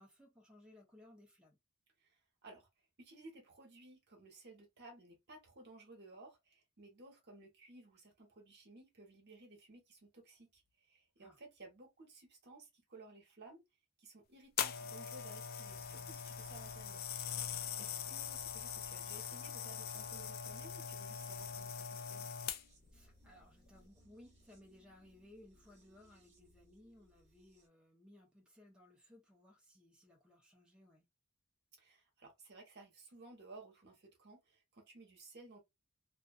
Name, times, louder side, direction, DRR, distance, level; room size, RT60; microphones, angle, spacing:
voice 1, 0.0-1.6 11.2-11.4 17.8-17.9 22.9-31.0, left 1 dB, 5° right, 0.7 m, -62 dB
voice 2, 2.0-2.7 3.0-13.6 14.0-17.0 17.4-22.3 31.8-35.6, right 2 dB, 55° right, 1.0 m, -57 dB
sound 1, 14.6-22.9 23.6-23.8, left 8 dB, 45° left, 0.3 m, -42 dB
sound 2, 15.6-27.7, equal, 30° right, 1.0 m, -66 dB
2.5 x 2.3 x 2.3 m
head